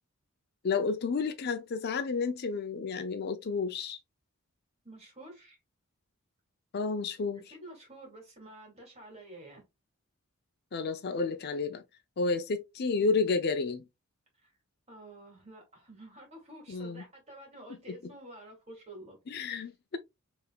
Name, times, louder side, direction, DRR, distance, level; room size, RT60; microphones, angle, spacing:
voice 1, 0.6-4.0 6.7-7.4 10.7-11.8 12.2-13.8 16.7-17.0 19.3-20.0, left 4 dB, 45° left, 0.4 m, -31 dB
voice 2, 4.8-5.6 7.3-9.6 14.4-14.5 14.9-19.2, right 1 dB, 30° right, 2.3 m, -49 dB
5.3 x 3.4 x 2.2 m
head